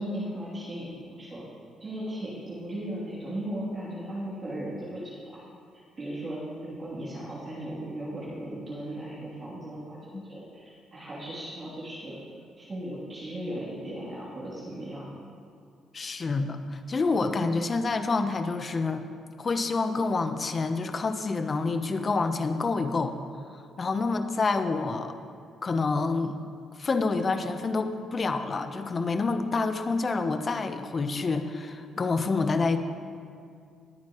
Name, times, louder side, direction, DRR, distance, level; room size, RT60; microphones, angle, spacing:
voice 1, 0.0-1.5 1.8-5.3 6.0-12.2 12.6-15.1, right 1 dB, 30° right, -8 dB, 2.8 m, -37 dB
voice 2, 15.9-19.1 19.4-23.1 23.5-25.1 25.6-26.4 26.8-32.8, left 3 dB, 30° left, 8 dB, 0.8 m, -28 dB
20.5 x 9.3 x 3.0 m, 2.3 s
cardioid pair, 125°, 0 cm